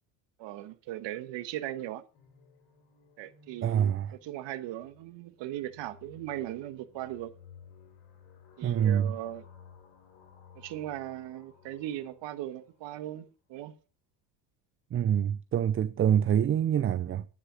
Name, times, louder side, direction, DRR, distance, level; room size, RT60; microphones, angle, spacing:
voice 1, 0.4-2.0 3.2-7.3 8.6-9.4 10.5-13.7, right 13 dB, 60° right, 1.4 m, -38 dB
sound 1, 2.1-12.9, left 6 dB, 70° left, 3.4 m, -57 dB
voice 2, 3.6-4.1 8.6-9.1 14.9-17.3, right 9 dB, 25° right, 0.5 m, -26 dB
9.7 x 6.8 x 7.4 m
hypercardioid pair, 70°, 49 cm